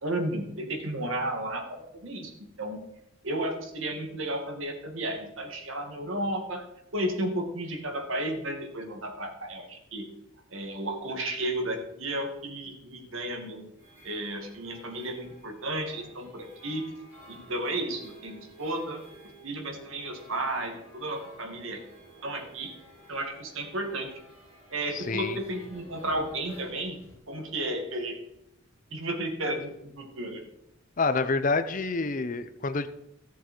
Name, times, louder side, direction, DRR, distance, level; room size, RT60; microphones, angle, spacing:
voice 1, 0.0-2.3 2.6-2.8 3.2-6.6 6.9-10.1 10.5-13.7 14.0-16.9 17.3-19.0 19.4-21.8 22.2-22.7 23.1-24.1 24.7-27.0 27.3-28.2 28.9-30.4, right 1 dB, 70° right, 4 dB, 2.1 m, -33 dB
sound 1, 13.8-27.2, right 1 dB, 10° right, 5.3 m, -52 dB
voice 2, 24.9-25.4 31.0-32.9, left 3 dB, 40° left, 12 dB, 0.6 m, -28 dB
14.5 x 7.0 x 4.5 m, 0.82 s
head